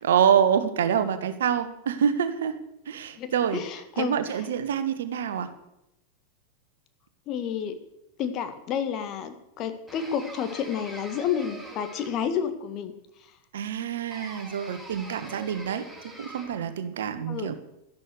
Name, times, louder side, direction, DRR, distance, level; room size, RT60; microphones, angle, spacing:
voice 1, 0.0-2.6 2.9-3.6 4.0-5.5 13.5-17.6, right 8 dB, 60° right, 11 dB, 1.4 m, -26 dB
voice 2, 3.2-4.1 7.3-7.8 8.2-12.9 17.3-17.5, left 8 dB, 35° left, 8 dB, 1.9 m, -30 dB
sound 1, 9.9-12.4 14.1-16.7, right 1 dB, 5° left, 3.2 m, -44 dB
12.5 x 11.5 x 6.7 m, 0.84 s
figure-of-eight pair, 90°, 0 cm